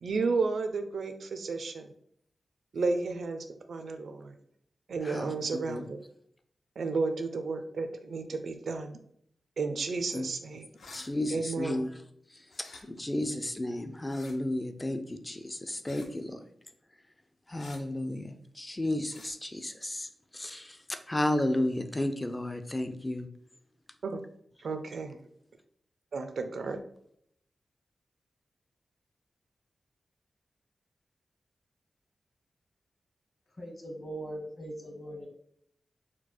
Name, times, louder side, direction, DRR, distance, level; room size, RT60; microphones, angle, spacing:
voice 1, 0.0-1.9 2.7-4.3 4.9-6.0 6.8-9.0 9.6-10.7 11.3-11.8 24.0-24.2 24.6-25.2 26.1-26.8, right 4 dB, 75° right, 7 dB, 0.5 m, -32 dB
voice 2, 5.0-5.8 10.1-10.3 10.9-11.9 12.9-16.4 17.5-20.1 20.3-23.3, left 1 dB, 15° left, 8 dB, 0.4 m, -33 dB
sound 1, 10.7-11.1 12.5-12.8 14.0-14.3 15.8-16.1 17.6-17.8 19.1-19.3, left 3 dB, 65° left, 0.7 m, -49 dB
voice 3, 33.6-35.3, right 1 dB, 40° left, 1 dB, 1.1 m, -40 dB
4.4 x 2.4 x 4.2 m, 0.69 s
wide cardioid pair, 135°, 0 cm